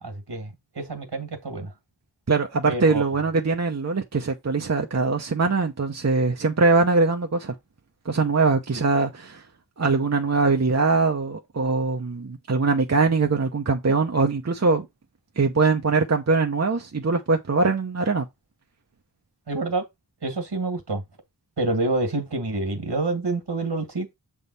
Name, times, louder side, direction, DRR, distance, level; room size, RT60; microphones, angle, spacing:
voice 1, 0.0-1.7 2.7-3.0 19.5-19.9 20.2-21.0 21.6-24.1, right 2 dB, 70° right, 1.9 m, -27 dB
voice 2, 2.3-7.5 8.1-9.4 9.8-14.9 15.4-18.2, right 4 dB, 40° right, 0.8 m, -22 dB
7.1 x 3.6 x 4.0 m
wide cardioid pair, 55°, 41 cm